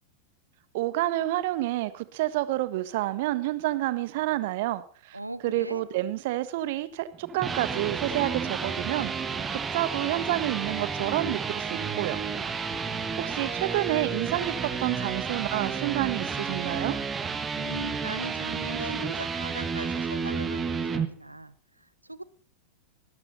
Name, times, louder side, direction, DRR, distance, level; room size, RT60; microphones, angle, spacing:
voice 1, 0.7-12.2 13.2-17.0, right 15 dB, 50° right, 15 dB, 1.4 m, -29 dB
voice 2, 5.1-5.9 17.6-22.2, right 2 dB, 85° right, 18 dB, 1.0 m, -39 dB
sound 1, 7.1-21.1, right 5 dB, 20° right, 1.4 m, -31 dB
17.5 x 13.5 x 4.2 m, 0.39 s
figure-of-eight pair, 90°, 0 cm